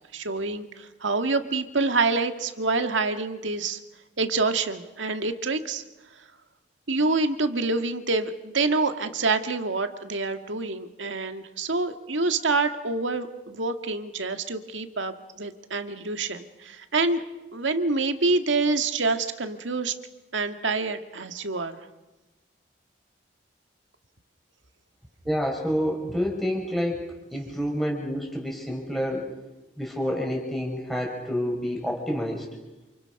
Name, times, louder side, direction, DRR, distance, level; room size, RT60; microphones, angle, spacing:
voice 1, 0.1-3.8 4.2-5.8 6.9-17.2 17.5-19.9 20.3-21.8, right 3 dB, 85° right, 7 dB, 2.0 m, -26 dB
voice 2, 25.2-29.3 29.8-32.5, equal, ahead, 0 dB, 4.8 m, -28 dB
28.5 x 28.0 x 6.0 m, 1.1 s
head